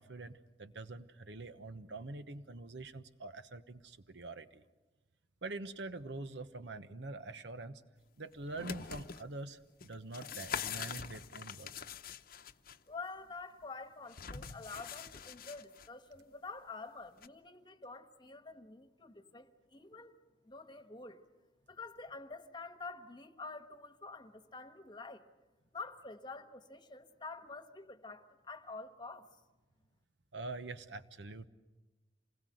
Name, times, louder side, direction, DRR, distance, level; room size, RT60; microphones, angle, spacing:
voice 1, 0.0-4.6 5.4-7.8 8.2-11.7 30.3-31.5, right 2 dB, 75° right, 1.1 m, -45 dB
sound 1, 8.3-9.2 9.8-12.8 14.1-15.9 17.2-17.3, left 7 dB, 55° left, 0.8 m, -43 dB
voice 2, 12.9-20.2 20.4-21.2 21.7-25.2 25.7-29.3, left 3 dB, 25° left, 1.3 m, -48 dB
28.0 x 20.5 x 7.9 m
head